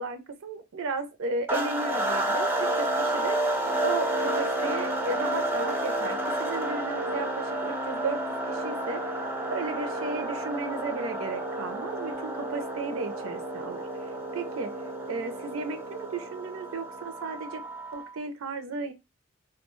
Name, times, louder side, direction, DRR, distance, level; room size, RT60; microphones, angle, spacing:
voice 1, 0.0-3.4 3.8-8.2 8.5-9.1 9.4-13.9 14.3-14.7 15.1-17.6 17.9-18.9, right 3 dB, 80° right, 0.5 m, -34 dB
sound 1, 1.5-18.2, right 1 dB, 10° right, 0.4 m, -30 dB
2.3 x 2.2 x 2.9 m
head